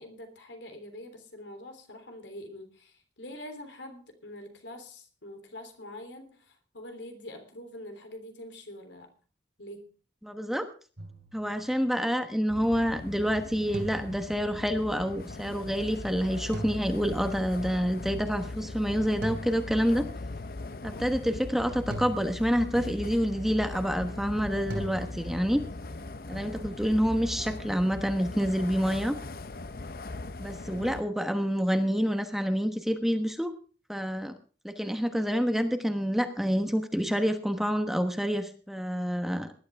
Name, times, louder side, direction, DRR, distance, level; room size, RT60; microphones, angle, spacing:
voice 1, 0.0-9.1 9.6-9.9 21.2-21.4, left 1 dB, 85° left, 6 dB, 3.4 m, -45 dB
voice 2, 10.2-10.7 11.3-20.0 20.8-25.6 26.3-29.2 30.4-33.5 33.9-34.3 34.6-39.5, equal, ahead, 7 dB, 1.1 m, -28 dB
sound 1, 11.0-12.0 13.7-14.9 16.5-17.7 19.2-20.4 21.9-23.1 24.7-25.6, right 1 dB, 70° right, 3.0 m, -42 dB
sound 2, 12.5-31.0, left 2 dB, 55° left, 0.7 m, -39 dB
19.5 x 11.5 x 3.5 m, 0.37 s
head